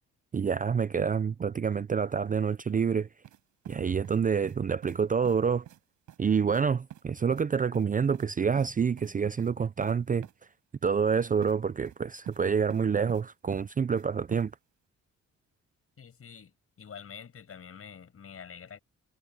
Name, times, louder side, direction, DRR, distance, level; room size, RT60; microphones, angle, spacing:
voice 1, 0.3-3.1 3.7-5.7 6.2-10.3 10.8-14.5, right 6 dB, 25° right, 0.6 m, -27 dB
sound 1, 3.2-3.4 3.6-4.6 4.8-5.0 5.2-5.4 5.6-5.8 6.1-6.2 6.5-6.6 6.9-7.0 7.3-7.4 7.7-8.3 8.6-8.7 9.0-9.1 9.4-9.5 9.8-9.9 10.2-10.3 11.4-11.5 11.8-12.4 12.7-13.2 13.5-14.0 14.3-14.4, right 11 dB, 75° right, 5.9 m, -46 dB
voice 2, 16.0-18.8, left 7 dB, 50° left, 7.5 m, -47 dB
cardioid pair, 90°, 30 cm